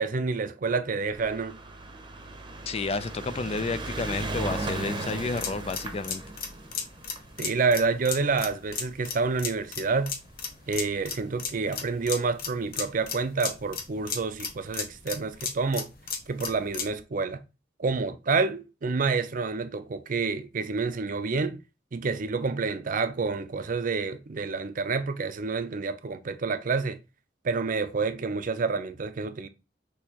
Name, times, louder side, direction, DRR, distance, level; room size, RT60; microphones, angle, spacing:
voice 1, 0.0-1.6 7.4-10.1 10.7-15.9 16.3-17.4 17.8-21.6 21.9-27.0 27.4-29.5, right 4 dB, 50° right, 0.5 m, -28 dB
sound 1, 1.1-9.6 10.4-10.5 10.7-10.8 11.0-11.1, right 2 dB, 25° right, 0.8 m, -37 dB
voice 2, 2.7-6.2, left 3 dB, 35° left, 0.4 m, -31 dB
sound 2, 5.2-17.0, left 6 dB, 55° left, 1.0 m, -35 dB
6.2 x 2.9 x 2.8 m
head